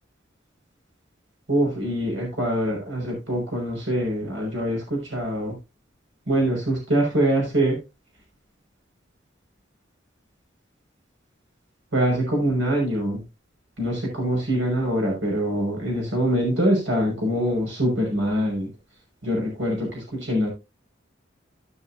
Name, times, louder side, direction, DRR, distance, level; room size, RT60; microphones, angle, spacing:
voice 1, 1.5-5.5 6.3-7.8 11.9-13.2 13.8-18.7 19.2-20.5, right 1 dB, 75° right, -1 dB, 6.2 m, -24 dB
17.0 x 6.1 x 2.8 m, 0.25 s
head